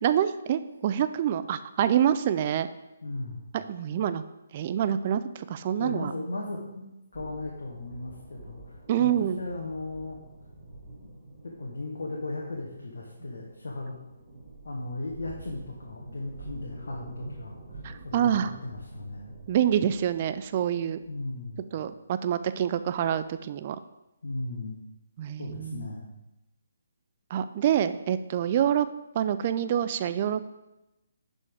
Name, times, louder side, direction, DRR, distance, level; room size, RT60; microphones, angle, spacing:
voice 1, 0.0-2.7 3.5-4.2 4.5-6.1 8.9-9.4 17.8-18.5 19.5-21.0 21.7-23.8 25.2-25.9 27.3-28.9 29.1-30.5, right 10 dB, 35° right, 12 dB, 0.4 m, -26 dB
voice 2, 3.0-3.5 5.8-10.2 11.4-13.9 14.6-19.3 21.1-21.6 24.2-24.8 25.4-26.1, left 2 dB, 70° left, -2 dB, 1.3 m, -37 dB
sound 1, 7.1-23.3, right 2 dB, 15° right, 3.3 m, -48 dB
10.5 x 5.4 x 3.6 m, 0.96 s
figure-of-eight pair, 145°, 0 cm